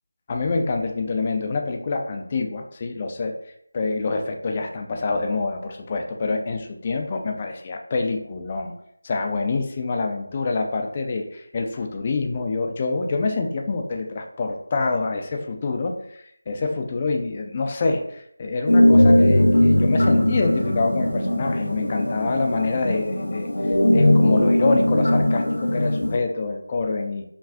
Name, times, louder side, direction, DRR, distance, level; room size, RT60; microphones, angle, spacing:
voice 1, 0.3-3.3 3.7-8.7 9.0-23.5 23.9-27.2, left 3 dB, 25° left, 3 dB, 0.4 m, -26 dB
sound 1, 18.7-26.2, left 1 dB, 80° left, 0.6 m, -19 dB
5.6 x 2.3 x 2.4 m, 0.72 s
figure-of-eight pair, 170°, 0 cm